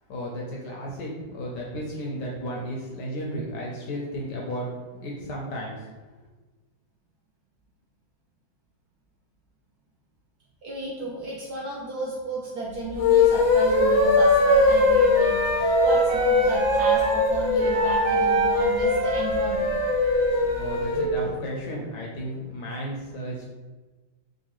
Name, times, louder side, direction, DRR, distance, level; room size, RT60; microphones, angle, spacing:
voice 1, 0.1-4.7 5.0-5.9 20.3-23.4, equal, 70° left, -2 dB, 1.1 m, -34 dB
voice 2, 10.6-19.7, right 2 dB, 70° right, -5 dB, 0.9 m, -33 dB
sound 1, 12.9-21.1, left 3 dB, 90° left, 1.4 m, -22 dB
Wind instrument woodwind instrument, 13.7-17.2 17.6-21.3, right 2 dB, 90° right, 1.8 m, -26 dB
3.8 x 2.5 x 3.0 m, 1.2 s
omnidirectional pair, 2.2 m